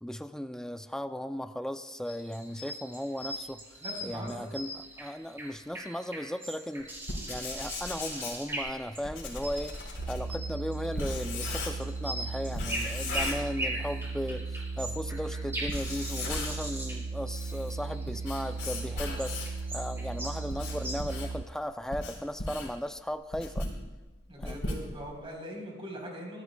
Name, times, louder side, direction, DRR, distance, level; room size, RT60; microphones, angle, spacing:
voice 1, 0.0-7.0 7.3-23.7 24.4-24.6, equal, 5° left, 9 dB, 0.3 m, -37 dB
sound 1, 2.0-9.9 10.3-21.2, right 1 dB, 10° right, 4.3 m, -40 dB
voice 2, 3.8-4.5 24.3-26.4, equal, 30° right, -1 dB, 3.7 m, -41 dB
Writing, 7.0-12.0 12.5-14.0 14.3-14.4 15.1-15.2 15.6-16.7 17.1-19.6 20.2-25.3, left 2 dB, 85° left, 3.7 m, -38 dB
sound 2, 10.0-21.4, right 3 dB, 80° right, 0.5 m, -37 dB
21.0 x 14.5 x 2.2 m, 1.2 s
head